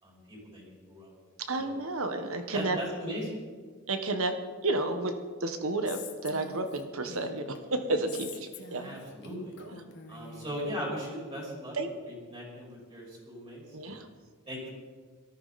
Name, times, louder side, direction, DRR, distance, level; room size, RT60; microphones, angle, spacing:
voice 1, 0.0-1.1 1.5-1.7 2.5-3.3 8.8-9.5 10.1-11.8 12.0-14.0 14.5-14.7, equal, 25° right, -4 dB, 5.5 m, -39 dB
voice 2, 1.5-2.8 3.9-4.3 4.6-5.1 5.4-8.8 9.6-9.8 11.8-11.9 13.7-14.0, right 2 dB, 75° right, 7 dB, 1.5 m, -31 dB
Female speech woman speaking, 5.9-7.6 8.1-10.6, left 5 dB, 55° left, 1.6 m, -45 dB
18.5 x 14.0 x 4.3 m, 1.5 s
head